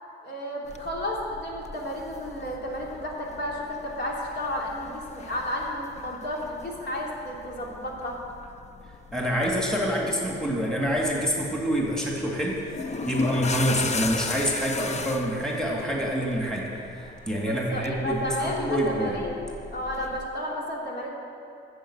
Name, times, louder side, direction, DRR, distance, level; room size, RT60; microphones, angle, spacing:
voice 1, 0.2-8.2 17.3-19.4 19.7-21.1, equal, 60° left, -3 dB, 3.0 m, -32 dB
sound 1, 0.7-20.3, left 4 dB, 35° left, 0.6 m, -38 dB
voice 2, 9.1-16.7 16.9-19.1, equal, 5° left, -2 dB, 2.1 m, -27 dB
10.0 x 7.2 x 8.6 m, 2.6 s
cardioid pair, 90°, 20 cm